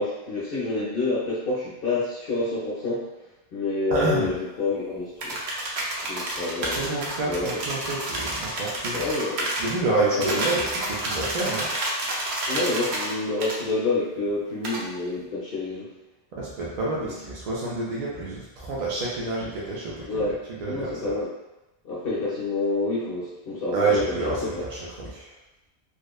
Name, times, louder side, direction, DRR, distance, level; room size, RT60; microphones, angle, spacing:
voice 1, 0.0-3.1 3.5-5.4 6.1-6.8 7.3-7.5 8.9-9.5 10.0-10.4 12.5-15.9 17.0-17.1 20.1-20.3 20.7-21.3 21.8-24.6, left 3 dB, 60° left, -8 dB, 0.8 m, -28 dB
voice 2, 3.9-4.3 6.6-9.1 9.6-11.7 16.3-20.3 20.6-21.1 23.7-25.3, right 3 dB, 55° right, -6 dB, 0.4 m, -28 dB
sound 1, 5.2-9.7 10.2-13.1 13.4-13.6 14.6-14.8, right 1 dB, 70° right, 0.8 m, -29 dB
2.9 x 2.0 x 2.2 m, 0.97 s
omnidirectional pair, 1.2 m